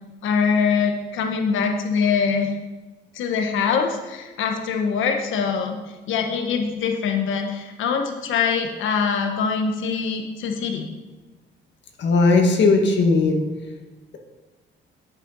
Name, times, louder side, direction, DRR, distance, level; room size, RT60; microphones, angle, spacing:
voice 1, 0.2-2.5 3.1-5.8 6.1-10.9, left 6 dB, 80° left, 3 dB, 1.2 m, -23 dB
voice 2, 12.0-13.4, left 3 dB, 65° left, 3 dB, 1.6 m, -17 dB
8.4 x 7.9 x 5.4 m, 1.2 s
cardioid pair, 90°, 20 cm